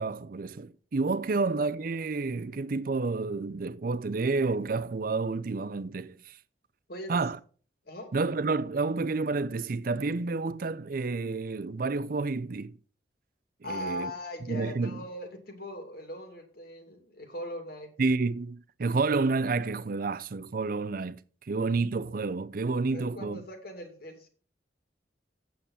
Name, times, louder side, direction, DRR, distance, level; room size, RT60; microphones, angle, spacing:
voice 1, 0.0-6.4 7.1-7.4 8.1-12.8 13.6-14.1 14.5-15.0 18.0-21.2 21.5-23.4, right 3 dB, 50° right, 0.5 m, -29 dB
voice 2, 13.6-17.9 22.9-24.3, left 1 dB, 60° left, 2.5 m, -40 dB
8.6 x 7.1 x 5.8 m
head